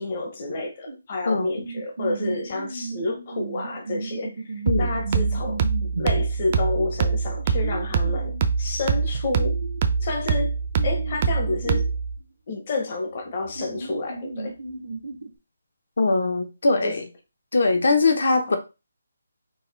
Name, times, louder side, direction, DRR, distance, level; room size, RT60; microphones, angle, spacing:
voice 1, 0.0-5.6 6.0-9.6 10.0-10.6 10.8-11.8 12.5-14.6 16.8-16.9 18.5-18.6, left 3 dB, 30° left, 0.8 m, -29 dB
sound 1, 0.9-1.0 1.5-8.5 9.1-11.9 12.9-13.0 13.3-15.3, right 3 dB, 60° right, 0.6 m, -35 dB
sound 2, 4.7-12.2, right 5 dB, 20° right, 0.3 m, -24 dB
voice 2, 16.0-17.0 17.5-18.6, left 3 dB, 60° left, 0.8 m, -21 dB
4.0 x 2.5 x 3.9 m
hypercardioid pair, 175°, 0 cm